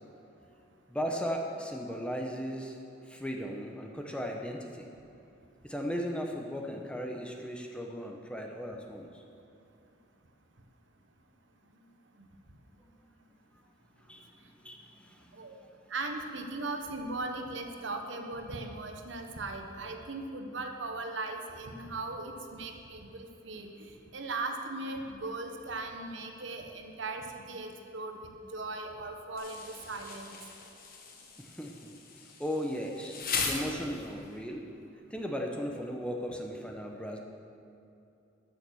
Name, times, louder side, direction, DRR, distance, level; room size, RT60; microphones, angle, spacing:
voice 1, 0.9-2.8 3.0-4.9 5.6-9.2 14.1-14.3 14.6-15.4 31.4-31.9 32.4-33.1 33.4-34.7 35.1-37.2, equal, 5° left, 2 dB, 0.8 m, -36 dB
voice 2, 15.9-30.4, right 2 dB, 65° right, 5 dB, 1.1 m, -38 dB
Insect, 29.4-34.3, left 4 dB, 45° left, 1.3 m, -38 dB
13.0 x 7.0 x 6.3 m, 2.7 s
head